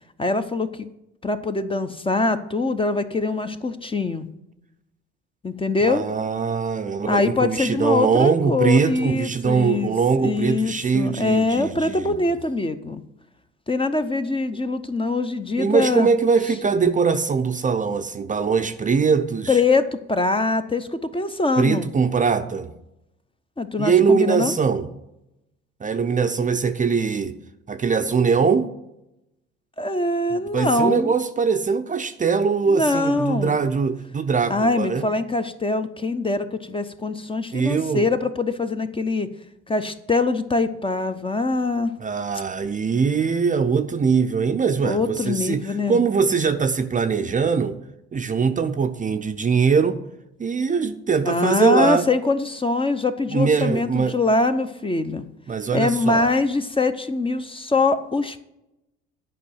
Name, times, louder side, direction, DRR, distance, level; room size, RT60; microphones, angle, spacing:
voice 1, 0.2-0.9 1.2-4.2 5.4-6.0 7.1-9.9 10.2-13.0 13.7-16.1 19.5-21.9 23.6-24.5 29.8-31.1 32.7-33.6 34.5-39.3 39.7-41.9 44.8-46.0 51.2-55.2 55.7-58.4, left 3 dB, 15° left, 9 dB, 0.7 m, -23 dB
voice 2, 5.8-12.2 15.6-19.6 21.6-22.7 23.8-24.9 25.8-27.3 27.7-28.7 30.3-35.0 37.1-37.2 37.5-38.1 42.0-47.8 48.1-50.0 50.4-52.1 53.3-54.1 55.5-56.3, right 5 dB, 25° right, 8 dB, 0.7 m, -22 dB
11.0 x 5.4 x 7.7 m, 0.87 s
figure-of-eight pair, 50°, 35 cm